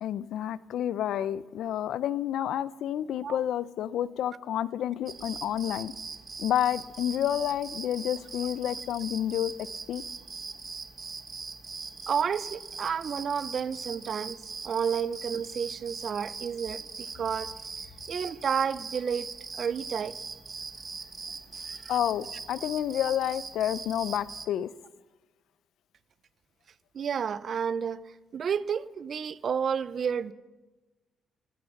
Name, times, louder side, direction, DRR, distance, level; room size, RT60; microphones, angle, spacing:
voice 1, 0.0-5.9 6.4-10.0 21.9-24.7, left 11 dB, 75° left, 18 dB, 0.5 m, -30 dB
sound 1, 5.1-24.5, right 4 dB, 35° right, 1.2 m, -41 dB
voice 2, 12.1-14.4 14.6-17.5 18.1-19.3 19.5-20.2 21.7-21.9 26.9-28.0 28.3-30.3, right 7 dB, 55° right, 17 dB, 0.6 m, -31 dB
16.5 x 12.0 x 6.5 m, 1.2 s
cardioid pair, 90°, 0 cm